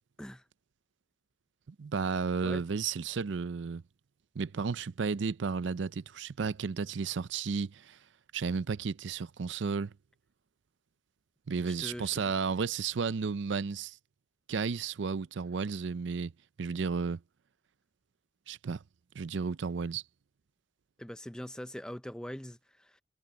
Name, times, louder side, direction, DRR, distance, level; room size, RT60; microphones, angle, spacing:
voice 1, 1.7-3.8 4.4-8.0 8.3-9.9 11.5-14.0 14.5-16.3 16.6-17.2 18.5-18.8 19.1-20.0, right 5 dB, 75° right, 0.5 m, -33 dB
voice 2, 11.6-12.3 21.0-23.0, equal, 5° left, 0.5 m, -42 dB
head